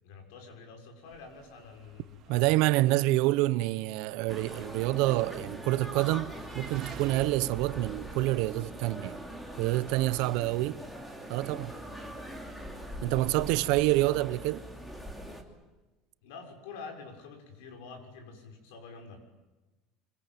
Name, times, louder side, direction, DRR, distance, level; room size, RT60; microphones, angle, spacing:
voice 1, 0.0-2.5 2.9-3.0 10.3-10.6 13.0-13.5 16.2-19.2, left 5 dB, 85° left, 6.6 m, -47 dB
sound 1, 1.1-13.6, right 6 dB, 35° right, 3.7 m, -52 dB
voice 2, 2.3-9.2 9.6-10.8 11.3-11.7 13.0-14.6, right 18 dB, 65° right, 0.9 m, -27 dB
sound 2, 4.3-15.4, equal, 5° left, 2.9 m, -42 dB
25.5 x 23.5 x 9.2 m
cardioid pair, 170°, 0 cm